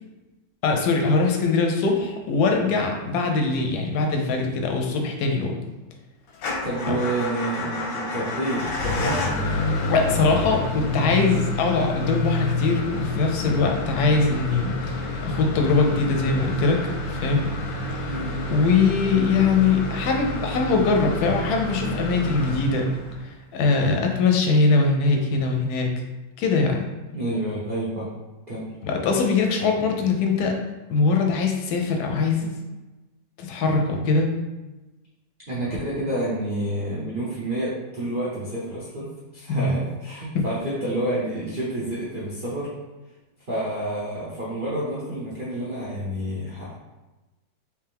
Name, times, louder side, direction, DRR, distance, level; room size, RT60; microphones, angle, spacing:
voice 1, 0.6-5.6 6.9-7.0 9.9-16.8 17.1-17.5 18.5-22.9 23.5-25.9 26.4-26.8 28.8-30.6 30.9-32.5 33.4-34.3 39.5-39.7 40.3-40.4, left 4 dB, 70° left, 2 dB, 0.9 m, -22 dB
Motor vehicle (road) / Engine starting / Idling, 6.3-23.3, left 2 dB, 90° left, 1.4 m, -29 dB
voice 2, 6.6-9.5 18.1-18.4 27.1-28.1 28.5-28.7 35.5-42.7 43.5-46.7, right 1 dB, 85° right, -8 dB, 0.4 m, -29 dB
3.4 x 3.0 x 3.4 m, 1.1 s
omnidirectional pair, 2.1 m